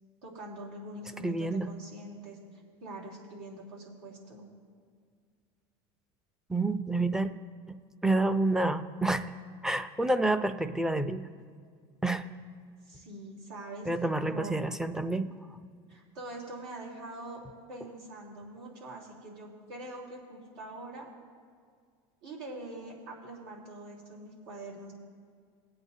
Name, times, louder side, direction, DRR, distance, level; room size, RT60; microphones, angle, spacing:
voice 1, 0.2-2.4 2.8-4.4 12.9-13.9 14.3-14.6 15.9-17.4 17.7-21.1 22.2-24.9, right 2 dB, 80° right, -4 dB, 3.3 m, -44 dB
voice 2, 1.2-1.7 6.5-7.3 7.7-7.8 8.0-9.3 9.6-11.2 12.0-12.3 13.9-15.3, right 2 dB, 5° right, 10 dB, 0.5 m, -28 dB
20.5 x 8.7 x 2.7 m, 2.1 s
supercardioid pair, 120°, 13 cm